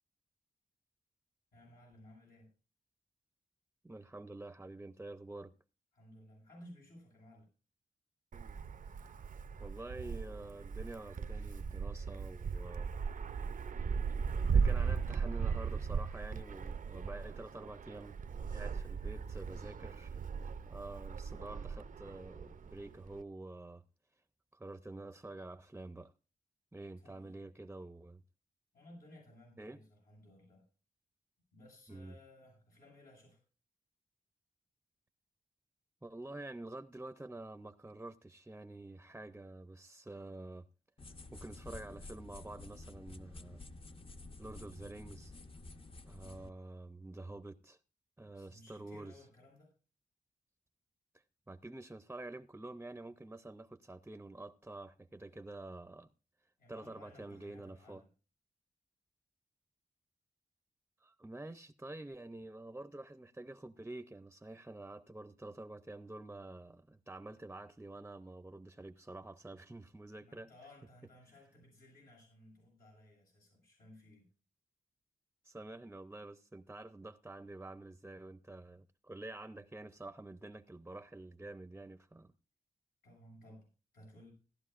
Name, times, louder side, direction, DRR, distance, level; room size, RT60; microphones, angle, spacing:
voice 1, 1.5-2.5 5.9-7.5 27.0-27.4 28.7-30.7 31.5-33.4 48.3-49.7 56.6-58.1 70.2-74.3 83.0-83.7 83.9-84.3, left 1 dB, 85° left, 7.4 m, -58 dB
voice 2, 3.8-5.5 9.6-12.9 14.5-18.2 18.5-20.2 20.7-23.8 24.5-26.1 26.7-28.2 29.6-29.8 31.9-32.1 36.0-40.7 41.3-43.6 44.4-45.4 46.1-47.8 48.2-49.3 51.5-56.1 56.7-58.0 61.0-70.5 75.4-82.3, right 2 dB, 10° right, 0.6 m, -48 dB
Wind, 8.3-23.2, right 6 dB, 65° right, 0.6 m, -37 dB
sound 1, 41.0-46.5, left 2 dB, 40° left, 0.8 m, -50 dB
17.0 x 12.0 x 2.5 m
wide cardioid pair, 100°, 15 cm